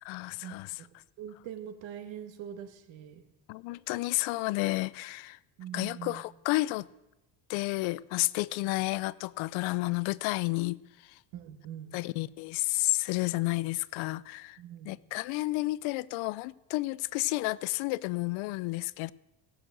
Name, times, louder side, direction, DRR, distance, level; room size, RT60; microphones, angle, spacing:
voice 1, 0.0-0.7 3.5-5.4 5.7-6.9 7.5-10.8 11.9-14.6 14.8-19.1, left 21 dB, 85° left, 0.6 m, -31 dB
voice 2, 1.2-3.2 5.6-6.2 11.3-12.0 14.6-14.9, right 10 dB, 75° right, 1.8 m, -43 dB
17.0 x 6.4 x 7.7 m
cardioid pair, 135°, 46 cm